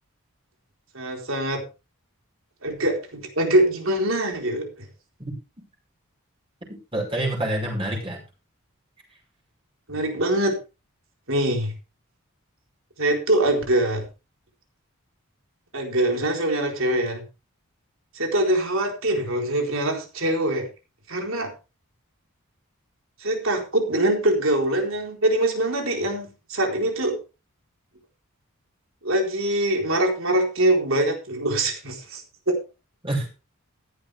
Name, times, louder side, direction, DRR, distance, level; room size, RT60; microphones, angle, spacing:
voice 1, 0.9-1.6 2.6-4.9 9.9-10.6 11.3-11.7 13.0-14.0 15.7-17.3 18.1-20.7 21.1-21.5 23.2-27.2 29.0-32.6, right 1 dB, 65° right, 2 dB, 4.1 m, -23 dB
voice 2, 6.7-8.2 33.0-33.3, right 1 dB, 25° right, -1 dB, 5.2 m, -27 dB
14.5 x 11.0 x 3.5 m, 0.30 s
head